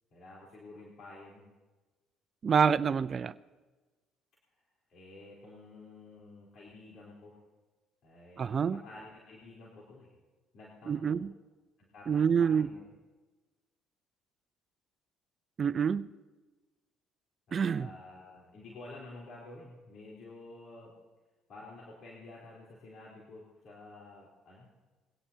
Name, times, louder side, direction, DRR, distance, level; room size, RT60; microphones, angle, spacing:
voice 1, 0.1-1.5 4.5-4.6 4.9-7.4 8.0-10.1 10.5-11.2 11.9-12.9 17.7-20.9 21.5-24.7, left 2 dB, 60° left, -5 dB, 3.8 m, -50 dB
voice 2, 2.4-3.3 8.4-8.8 10.9-11.3 12.1-12.7 15.6-16.1 17.5-17.9, right 6 dB, 45° right, 14 dB, 0.4 m, -27 dB
21.5 x 16.5 x 2.8 m, 1.3 s
supercardioid pair, 75°, 0 cm